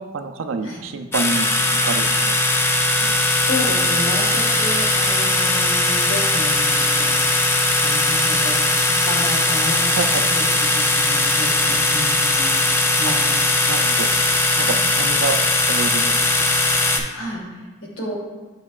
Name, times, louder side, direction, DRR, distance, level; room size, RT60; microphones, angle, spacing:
voice 1, 0.1-1.5 1.8-2.5 9.9-10.2 13.1-13.2 13.7-14.1 14.6-15.4 15.7-16.1, right 4 dB, 80° right, 8 dB, 0.5 m, -27 dB
sound 1, 1.1-17.0, left 2 dB, 10° left, 0.3 m, -19 dB
voice 2, 3.4-7.1 7.8-12.6 12.9-13.6 14.6-14.8 17.1-17.5 17.8-18.2, left 1 dB, 85° left, -3 dB, 1.7 m, -30 dB
8.4 x 4.7 x 2.4 m, 1.2 s
head